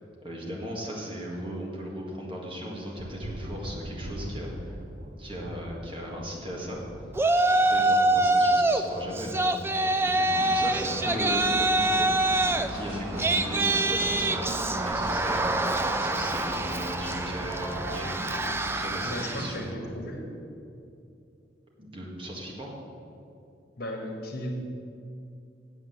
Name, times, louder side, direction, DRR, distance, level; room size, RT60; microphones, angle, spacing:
voice 1, 0.2-4.8 5.2-6.8 7.5-12.1 12.7-18.1 18.4-19.9 21.8-22.7, equal, 30° right, -3 dB, 1.9 m, -37 dB
Thunder, 2.7-20.2, right 1 dB, 45° right, 0.8 m, -45 dB
Yell, 7.2-8.8 9.2-19.6, right 2 dB, 15° right, 0.3 m, -25 dB
sound 1, 10.3-18.8, equal, 20° left, 2.6 m, -37 dB
voice 2, 19.0-20.3 23.8-24.5, left 1 dB, 55° left, 2 dB, 1.5 m, -35 dB
8.1 x 7.7 x 7.9 m, 2.6 s
head